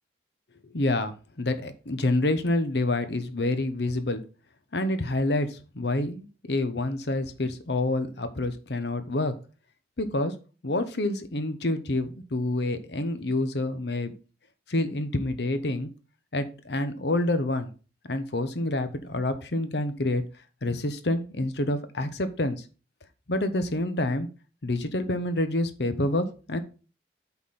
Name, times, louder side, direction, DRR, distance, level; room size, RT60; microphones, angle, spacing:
voice 1, 0.7-4.2 4.7-9.3 10.0-10.3 10.6-14.1 14.7-15.9 16.3-17.7 18.1-20.2 20.6-22.6 23.3-24.3 24.6-26.6, left 2 dB, 70° left, 10 dB, 1.0 m, -27 dB
8.1 x 4.3 x 5.6 m, 0.35 s
head